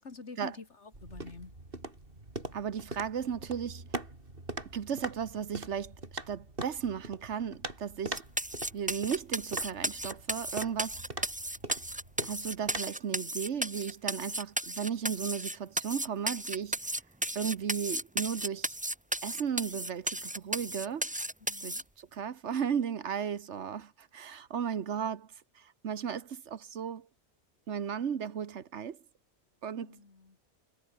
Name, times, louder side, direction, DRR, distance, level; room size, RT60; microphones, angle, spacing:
voice 1, 0.0-1.5 21.5-21.8 29.8-30.4, left 4 dB, 75° left, 2.7 m, -47 dB
sound 1, 0.9-12.8, right 2 dB, 50° right, 4.4 m, -42 dB
voice 2, 2.5-3.9 4.7-5.9 6.3-8.2 8.7-11.0 12.2-16.8 17.3-18.8 19.2-21.1 21.6-25.3 25.6-27.1 27.7-29.0 29.6-30.0, right 7 dB, 80° right, 1.4 m, -35 dB
sound 2, 8.2-21.8, right 1 dB, 5° right, 1.0 m, -34 dB
omnidirectional pair, 1.2 m